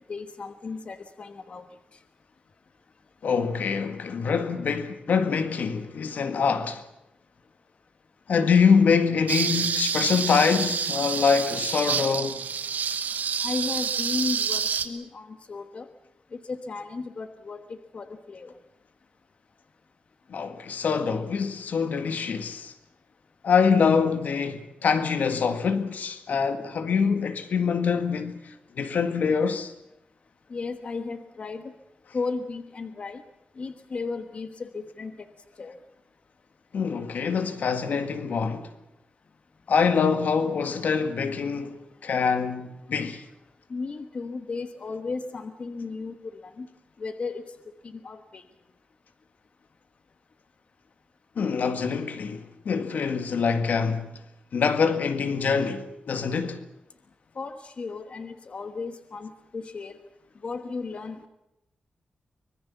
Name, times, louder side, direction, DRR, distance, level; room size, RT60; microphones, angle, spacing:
voice 1, 0.1-1.7 13.4-15.9 16.3-18.6 30.5-31.7 32.1-33.2 33.6-35.3 35.6-35.8 43.7-46.7 47.0-47.5 47.8-48.4 57.3-60.0 60.4-61.2, left 4 dB, 45° left, 1.3 m, -35 dB
voice 2, 3.2-6.8 8.3-12.4 20.3-22.7 23.4-29.7 36.7-38.7 39.7-43.2 51.4-54.1 54.5-56.6, left 5 dB, 75° left, 1.9 m, -25 dB
sound 1, 9.3-14.9, right 7 dB, 75° right, 1.6 m, -28 dB
24.5 x 21.5 x 7.2 m
wide cardioid pair, 150°, 3 cm